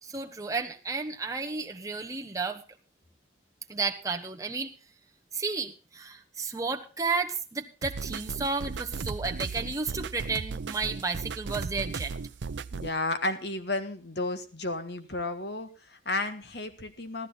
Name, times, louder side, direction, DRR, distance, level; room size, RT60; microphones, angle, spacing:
voice 1, 0.0-2.6 3.7-4.7 5.3-12.1, right 4 dB, 20° right, 3 dB, 1.2 m, -32 dB
sound 1, 7.8-12.9, right 4 dB, 80° right, 0.6 m, -36 dB
voice 2, 12.7-17.3, left 2 dB, 65° left, 9 dB, 1.5 m, -32 dB
14.5 x 13.0 x 4.1 m, 0.34 s
head